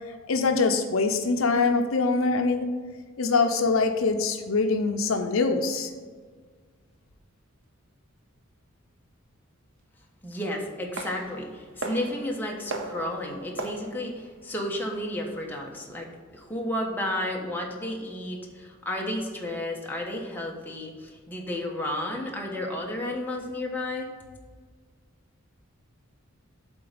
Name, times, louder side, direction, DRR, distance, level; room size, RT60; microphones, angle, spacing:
voice 1, 0.3-2.7 3.2-5.9, left 4 dB, 70° left, 6 dB, 0.6 m, -24 dB
voice 2, 10.2-24.1, left 1 dB, 10° left, -1 dB, 1.2 m, -32 dB
sound 1, 11.0-15.7, right 2 dB, 65° right, 0.9 m, -39 dB
8.0 x 3.8 x 6.8 m, 1.5 s
head